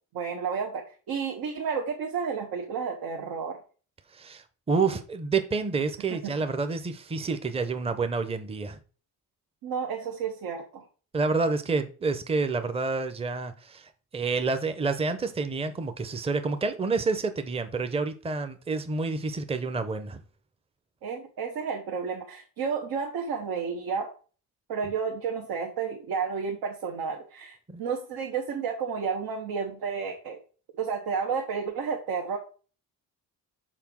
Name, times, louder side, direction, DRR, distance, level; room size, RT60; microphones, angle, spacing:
voice 1, 0.1-3.6 6.2-6.3 9.6-10.8 21.0-24.1 24.7-30.4 30.8-32.4, right 6 dB, 80° right, 1.4 m, -31 dB
voice 2, 4.1-8.8 11.1-20.2 27.7-27.8, right 4 dB, 15° right, 0.7 m, -29 dB
5.9 x 4.0 x 6.1 m
cardioid pair, 120°, 37 cm